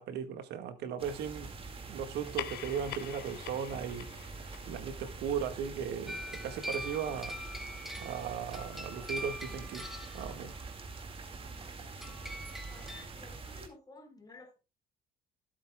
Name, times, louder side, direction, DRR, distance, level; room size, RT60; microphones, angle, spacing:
voice 1, 0.0-1.5 1.9-4.1 4.7-7.4 8.0-9.9 10.1-10.5, right 7 dB, 80° right, 1.7 m, -37 dB
sound 1, 1.0-13.7, right 4 dB, 35° right, 2.1 m, -45 dB
sound 2, 2.1-7.0, left 13 dB, 70° left, 0.9 m, -46 dB
sound 3, 6.1-10.6 12.0-13.0, equal, ahead, 2.1 m, -43 dB
voice 2, 12.7-14.6, left 2 dB, 20° left, 4.4 m, -54 dB
16.0 x 8.6 x 2.3 m
cardioid pair, 110°, 17 cm